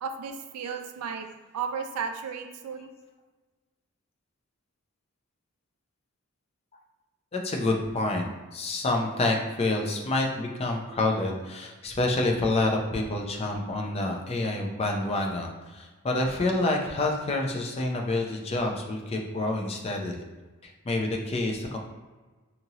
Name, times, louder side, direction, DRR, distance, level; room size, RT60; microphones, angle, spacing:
voice 1, 0.0-1.3 1.5-2.9, right 6 dB, 85° right, 6 dB, 0.3 m, -34 dB
voice 2, 7.3-20.2 20.6-21.8, left 2 dB, 25° left, 1 dB, 0.4 m, -28 dB
2.9 x 2.6 x 2.7 m, 1.3 s
head